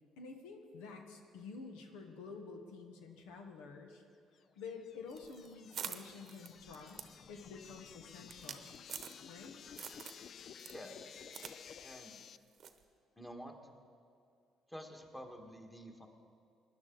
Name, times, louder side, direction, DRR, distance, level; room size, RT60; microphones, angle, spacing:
voice 1, 0.2-4.0 4.6-8.7 9.3-9.5, left 4 dB, 90° left, 4 dB, 1.1 m, -50 dB
sound 1, 4.4-12.4, left 7 dB, 55° left, 0.4 m, -54 dB
sound 2, 5.1-9.5 9.8-10.3 10.6-11.6 11.8-11.9 12.6-12.8, right 7 dB, 55° right, 0.9 m, -47 dB
voice 2, 10.6-11.1 11.8-12.2 13.2-13.6 14.7-16.1, equal, 10° left, 3 dB, 1.8 m, -49 dB
19.0 x 10.5 x 4.0 m, 2.3 s
supercardioid pair, 70°, 0 cm